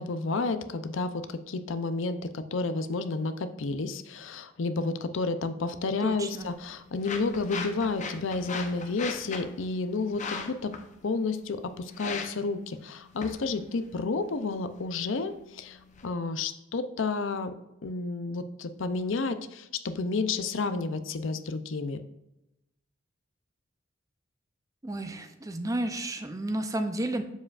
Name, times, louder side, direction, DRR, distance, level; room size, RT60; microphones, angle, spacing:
voice 1, 0.0-10.7 11.0-15.8 16.0-17.5 17.8-22.0, left 3 dB, 75° left, 10 dB, 0.6 m, -31 dB
voice 2, 6.0-6.5 24.8-27.2, right 1 dB, 15° right, 7 dB, 0.5 m, -32 dB
sound 1, 6.1-16.1, left 4 dB, 40° left, 0.7 m, -41 dB
7.4 x 7.1 x 2.5 m, 0.90 s
head